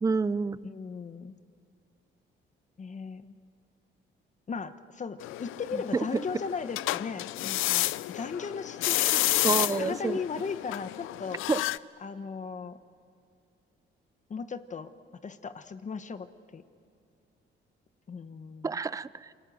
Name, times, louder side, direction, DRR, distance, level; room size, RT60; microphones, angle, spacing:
voice 1, 0.0-0.6 5.7-6.0 9.4-10.2 11.5-11.6 18.6-19.3, right 4 dB, 15° right, 18 dB, 0.5 m, -28 dB
voice 2, 0.6-1.3 2.8-3.4 4.5-9.5 9.8-11.4 12.0-12.8 14.3-14.9 15.2-16.3 16.5-16.6 18.1-18.7, left 5 dB, 40° left, 11 dB, 1.1 m, -37 dB
sound 1, 5.2-11.8, left 17 dB, 90° left, 0.5 m, -30 dB
28.5 x 22.0 x 7.8 m, 2.5 s
cardioid pair, 90°, 20 cm